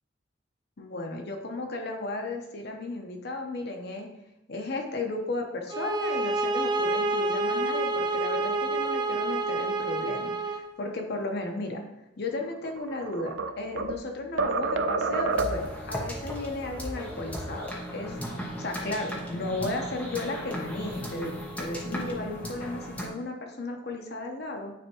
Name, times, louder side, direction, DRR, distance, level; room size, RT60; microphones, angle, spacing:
voice 1, 0.8-4.1 4.5-11.8 12.2-18.2 18.6-24.7, left 2 dB, 60° left, 2 dB, 0.9 m, -34 dB
sound 1, 5.7-10.7, right 3 dB, 25° right, 0.4 m, -28 dB
sound 2, 12.7-14.0 14.4-15.8, right 3 dB, 90° right, 0.4 m, -28 dB
sound 3, 15.3-23.1, equal, 10° left, 1.1 m, -36 dB
9.5 x 3.5 x 3.0 m, 0.89 s
head